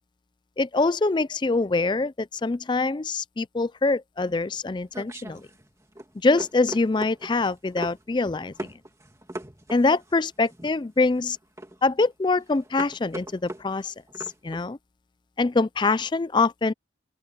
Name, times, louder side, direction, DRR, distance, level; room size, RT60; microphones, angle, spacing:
voice 1, 0.6-5.4 6.2-8.7 9.7-11.4 11.8-13.9 14.4-14.8 15.4-16.7, left 3 dB, 25° left, 0.4 m, -24 dB
sound 1, 4.3-14.7, right 1 dB, 15° right, 2.7 m, -40 dB
open air
head